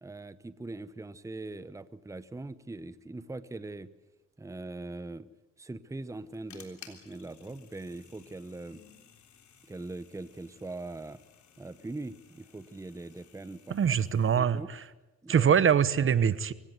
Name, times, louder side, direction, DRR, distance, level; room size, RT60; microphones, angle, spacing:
voice 1, 0.0-3.9 4.4-5.3 5.6-8.8 9.7-11.2 11.6-13.8 14.3-14.7 15.2-15.7, right 2 dB, 10° right, 15 dB, 0.9 m, -41 dB
sound 1, 6.0-14.4, left 8 dB, 70° left, 3.6 m, -57 dB
voice 2, 13.7-14.8 15.3-16.5, right 8 dB, 45° right, 17 dB, 0.9 m, -24 dB
25.0 x 16.0 x 9.3 m, 1.1 s
cardioid pair, 90°, 30 cm